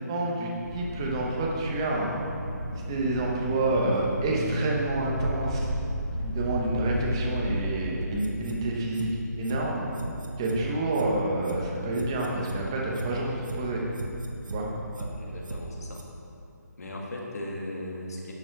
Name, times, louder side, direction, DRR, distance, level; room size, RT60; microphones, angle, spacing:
voice 1, 0.1-2.2 2.9-5.7 6.2-9.1 9.4-9.8 10.4-13.8 14.5-14.7, right 2 dB, 15° right, -2 dB, 0.8 m, -28 dB
sound 1, 0.6-7.6, equal, 5° left, 2.5 m, -33 dB
sound 2, 8.0-8.6 8.9-9.1 9.4-9.6 9.9-10.6 10.9-11.1 11.4-11.6 11.9-12.6 12.9-13.1 13.4-13.6 13.9-14.6 14.9-15.1 15.4-15.6 15.9-16.0, right 2 dB, 90° right, 1.3 m, -36 dB
voice 2, 14.9-16.0 16.8-18.3, left 1 dB, 60° left, -1 dB, 1.9 m, -37 dB
10.5 x 7.0 x 4.5 m, 2.6 s
hypercardioid pair, 175°, 10 cm